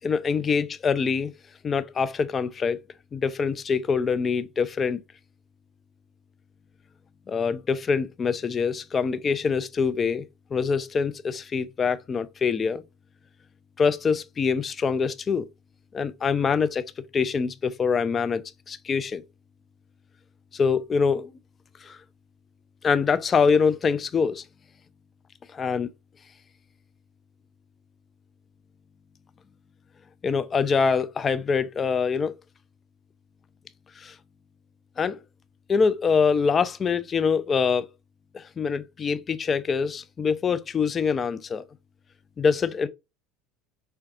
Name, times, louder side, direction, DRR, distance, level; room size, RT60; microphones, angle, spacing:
voice 1, 0.0-1.3 1.6-2.8 3.1-5.0 7.3-10.2 10.5-12.8 13.8-15.5 15.9-16.8 17.1-18.4 18.7-19.2 20.5-21.3 21.8-22.0 22.8-24.4 25.5-25.9 30.2-32.4 34.0-34.2 35.0-35.2 35.7-37.9 38.3-41.6 42.4-42.9, left 5 dB, 30° left, 0.3 m, -24 dB
4.6 x 2.2 x 2.5 m
figure-of-eight pair, 70°, 0 cm